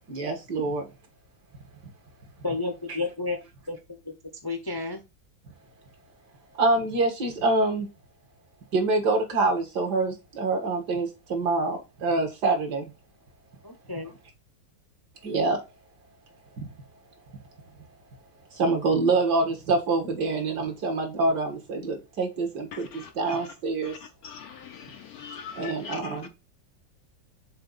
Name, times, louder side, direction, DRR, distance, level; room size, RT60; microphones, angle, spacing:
voice 1, 0.1-0.9 6.6-7.9 8.7-12.9 15.2-15.6 16.6-16.7 18.5-23.9 25.6-26.3, right 3 dB, 65° right, 2.2 m, -26 dB
voice 2, 2.4-3.4 3.7-3.8 4.0-4.1 4.4-5.0 13.6-14.1, left 3 dB, 20° left, 0.6 m, -31 dB
voice 3, 22.7-23.5 23.8-24.0 24.2-26.2, left 6 dB, 70° left, 0.9 m, -42 dB
6.7 x 3.7 x 4.0 m
omnidirectional pair, 1.9 m